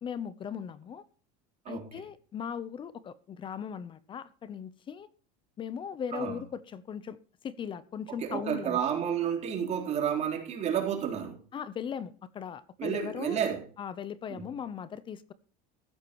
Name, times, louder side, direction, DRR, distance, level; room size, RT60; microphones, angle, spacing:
voice 1, 0.0-1.0 1.7-5.1 5.6-7.2 7.4-8.8 11.5-13.4 13.8-15.3, left 8 dB, 25° left, 0.8 m, -38 dB
voice 2, 8.1-11.4 12.8-13.6 14.3-14.5, right 8 dB, 35° right, 4.0 m, -31 dB
15.0 x 12.5 x 3.1 m
cardioid pair, 150°, 20 cm